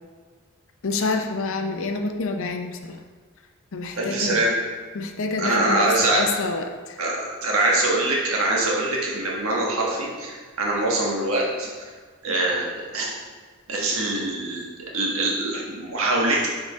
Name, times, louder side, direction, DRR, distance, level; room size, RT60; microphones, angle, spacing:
voice 1, 0.8-3.0 3.7-4.4 4.9-7.0, left 3 dB, 60° left, 5 dB, 0.6 m, -27 dB
voice 2, 3.9-4.5 5.4-6.2 7.0-11.7 12.2-13.1 13.7-16.5, right 2 dB, 70° right, -2 dB, 1.3 m, -24 dB
6.4 x 4.7 x 3.3 m, 1.5 s
head